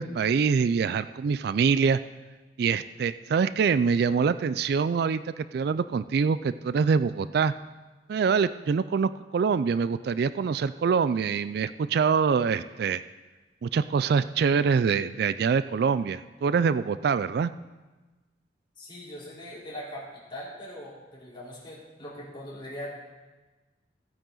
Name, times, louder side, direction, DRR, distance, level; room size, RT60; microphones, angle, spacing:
voice 1, 0.0-2.0 2.6-7.5 8.1-13.0 13.6-17.5, right 5 dB, 60° right, 14 dB, 0.3 m, -25 dB
voice 2, 18.8-22.9, equal, 30° left, -6 dB, 3.7 m, -41 dB
15.5 x 9.0 x 3.8 m, 1.2 s
head